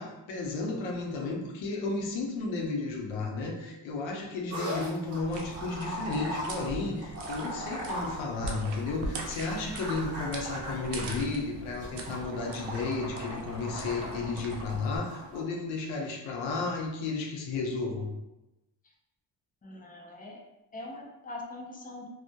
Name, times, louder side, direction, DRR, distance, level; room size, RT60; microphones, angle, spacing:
voice 1, 0.0-18.1, left 3 dB, 85° left, 0 dB, 0.7 m, -33 dB
sound 1, 4.5-15.4, equal, 30° right, 0.7 m, -40 dB
sound 2, 5.2-15.0, right 2 dB, 70° right, 0.6 m, -41 dB
voice 2, 19.6-20.4 20.7-22.1, left 2 dB, 20° left, 0 dB, 0.4 m, -42 dB
2.1 x 2.1 x 2.7 m, 0.95 s
cardioid pair, 100°, 45 cm